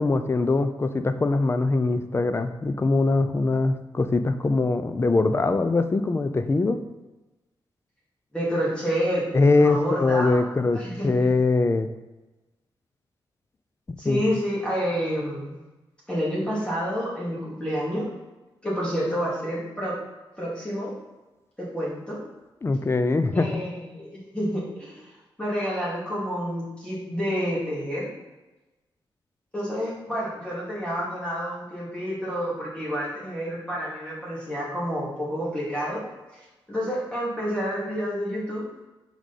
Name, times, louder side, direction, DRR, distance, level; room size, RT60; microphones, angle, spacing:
voice 1, 0.0-6.8 9.3-11.9 14.1-14.2 22.6-23.6, left 3 dB, 30° left, 9 dB, 0.5 m, -22 dB
voice 2, 8.3-9.2 9.6-11.3 14.0-15.5 16.1-18.1 18.6-20.0 20.4-20.9 21.6-22.2 23.3-25.1 25.4-28.1 29.5-36.0 36.3-38.7, equal, 10° left, -7 dB, 2.4 m, -29 dB
6.3 x 5.1 x 4.2 m, 1.1 s
cardioid pair, 95°, 9 cm